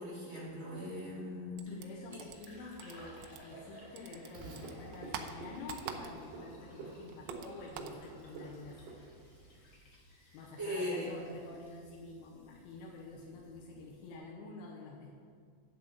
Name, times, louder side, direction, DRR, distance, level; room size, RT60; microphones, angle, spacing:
voice 1, 0.0-1.6 2.1-2.2 10.2-11.1, left 1 dB, 35° right, -8 dB, 0.9 m, -39 dB
sound 1, 1.6-3.7 4.0-6.5 6.7-8.0, right 8 dB, 85° right, 2.9 m, -46 dB
voice 2, 1.7-8.8 10.3-15.2, left 3 dB, 85° left, -4 dB, 3.5 m, -48 dB
Fill (with liquid), 1.8-14.1, left 1 dB, 50° left, 2.1 m, -58 dB
Frog, 4.3-9.5, right 3 dB, 70° right, 4.1 m, -48 dB
9.3 x 8.1 x 7.4 m, 2.1 s
omnidirectional pair, 5.2 m